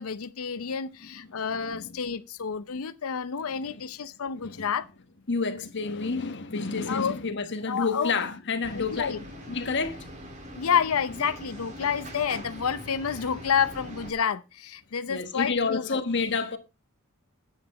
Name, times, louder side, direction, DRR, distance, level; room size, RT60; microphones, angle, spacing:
voice 1, 0.0-4.9 6.9-7.2 7.7-8.1 8.7-9.2 10.6-16.0, left 7 dB, 75° left, 0.6 m, -29 dB
voice 2, 1.0-1.4 1.7-2.0 3.5-3.8 4.4-4.6 5.3-9.1 9.5-10.0 15.1-16.6, left 4 dB, 55° left, 1.3 m, -30 dB
sound 1, 8.6-14.1, equal, 35° right, 2.4 m, -42 dB
9.7 x 8.3 x 4.2 m
head